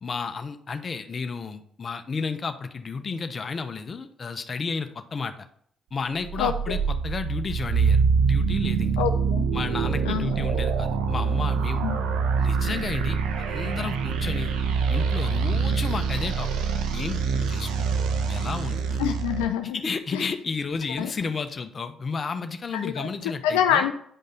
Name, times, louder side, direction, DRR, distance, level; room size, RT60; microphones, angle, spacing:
voice 1, 0.0-5.5 5.9-9.0 9.5-11.8 12.4-13.2 13.5-14.5 14.9-16.5 16.9-19.2 19.6-23.9, left 5 dB, 45° left, 9 dB, 1.0 m, -32 dB
sound 1, 6.2-19.4, right 5 dB, 75° right, 0.9 m, -25 dB
voice 2, 6.4-6.8 9.0-9.4 10.1-10.3 11.8-12.0 19.0-19.8 20.1-20.2 21.0-21.1 22.7-23.1 23.4-23.9, left 9 dB, 80° left, 6 dB, 0.5 m, -26 dB
9.9 x 5.3 x 3.9 m, 0.65 s
hypercardioid pair, 45°, 0 cm